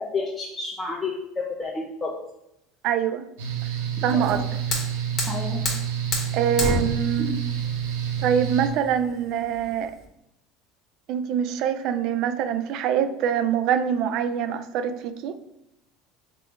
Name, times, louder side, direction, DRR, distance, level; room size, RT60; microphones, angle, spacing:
voice 1, 0.1-2.1 4.1-4.4 5.3-5.6, left 4 dB, 15° left, -2 dB, 0.5 m, -30 dB
voice 2, 2.8-3.3 4.0-4.4 6.3-7.4 8.2-9.9 11.1-15.3, right 8 dB, 60° right, 10 dB, 0.3 m, -24 dB
Mechanical fan, 3.4-8.7, right 9 dB, 90° right, 0.7 m, -28 dB
Fire, 4.1-10.0, left 2 dB, 45° left, 1.2 m, -32 dB
3.5 x 2.5 x 4.5 m, 0.83 s
supercardioid pair, 110°, 0 cm